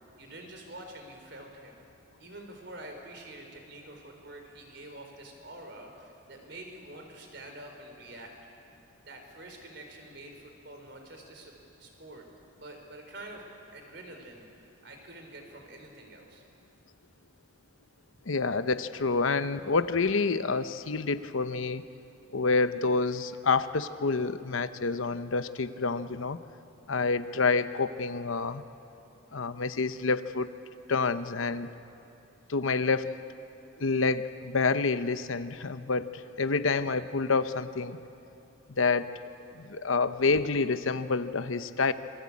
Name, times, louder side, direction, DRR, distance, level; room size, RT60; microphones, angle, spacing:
voice 1, 0.2-1.8 2.2-8.3 9.1-11.5 11.8-12.3 12.6-16.4, right 1 dB, 55° right, 3 dB, 4.3 m, -47 dB
voice 2, 18.3-21.8 22.3-26.4 26.9-28.6 29.3-30.5 30.9-31.7 32.5-33.1 33.8-38.0 38.7-39.1 39.6-41.9, left 4 dB, 80° left, 11 dB, 0.8 m, -28 dB
27.0 x 22.0 x 8.6 m, 2.7 s
head